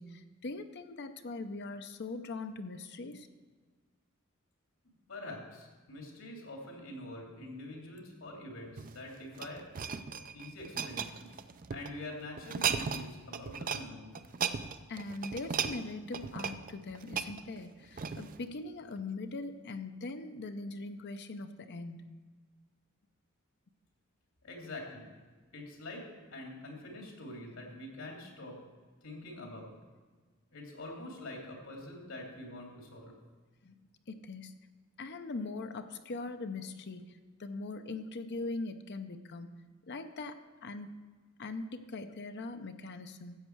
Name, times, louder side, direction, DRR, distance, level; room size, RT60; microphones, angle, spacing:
voice 1, 0.0-3.3 14.9-22.2 33.6-33.7 34.1-34.5 35.0-40.9 41.4-43.4, left 3 dB, 55° left, 8 dB, 0.6 m, -41 dB
voice 2, 5.1-9.7 10.1-11.3 11.7-14.1 24.4-25.1 25.5-28.6 29.0-29.7 30.5-33.1, left 1 dB, 80° left, 0 dB, 2.8 m, -45 dB
sound 1, 8.7-11.9 12.4-13.1 13.3-13.8 14.1-18.4 19.0-19.1, right 6 dB, 40° right, 0.5 m, -36 dB
13.5 x 8.2 x 4.6 m, 1.4 s
head